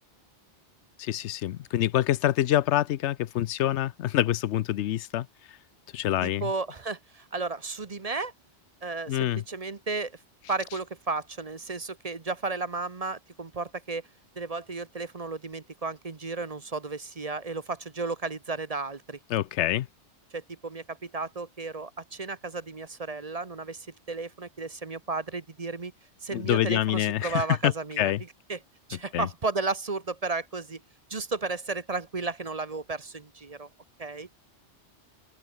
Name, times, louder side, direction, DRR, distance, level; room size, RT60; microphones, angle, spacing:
voice 1, 1.0-5.3 5.9-6.5 9.1-9.4 19.3-19.9 26.3-28.2 29.1-29.3, left 13 dB, 85° left, 0.9 m, -26 dB
voice 2, 6.2-8.3 8.8-10.1 10.5-14.0 14.4-19.2 20.3-25.9 26.2-28.1 28.5-28.6 28.9-30.8 31.1-33.7 34.0-34.3, right 3 dB, 35° right, 1.0 m, -33 dB
open air
omnidirectional pair, 1.2 m